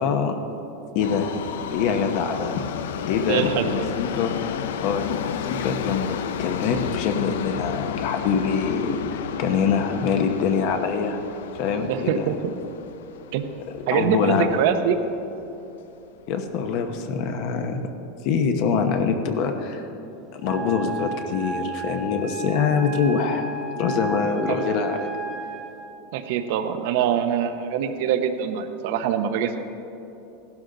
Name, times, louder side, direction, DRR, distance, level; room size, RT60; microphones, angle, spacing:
voice 1, 0.0-0.4 0.9-1.3 1.7-2.6 3.1-11.2 11.5-12.3 13.9-14.6 16.3-17.8 18.2-19.9 20.3-23.5 23.8-25.1, left 6 dB, 45° left, 5 dB, 0.9 m, -24 dB
Subway metro underground, 1.0-15.1 15.4-15.5 16.4-16.5 16.7-16.8 17.5-17.6, left 8 dB, 90° left, 0.6 m, -32 dB
voice 2, 3.3-3.9 11.9-12.5 13.3-13.5 13.9-15.0 24.5-24.6 26.1-29.6, right 8 dB, 60° right, 8 dB, 0.9 m, -24 dB
Wind instrument woodwind instrument, 20.4-25.8, right 3 dB, 25° right, 1.0 m, -33 dB
16.0 x 12.0 x 3.9 m, 2.9 s
supercardioid pair, 165°, 0 cm